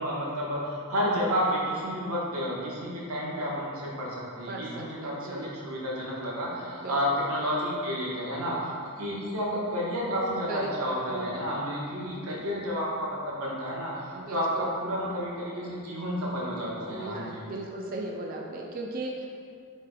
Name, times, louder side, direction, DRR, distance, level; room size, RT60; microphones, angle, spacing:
voice 1, 0.0-17.4, equal, 85° right, -5 dB, 1.1 m, -31 dB
voice 2, 4.5-5.5 6.8-7.3 10.5-10.7 11.1-11.5 12.3-12.6 14.1-14.7 16.7-19.3, right 2 dB, 40° right, -1 dB, 0.3 m, -38 dB
7.1 x 3.3 x 2.2 m, 2.3 s
head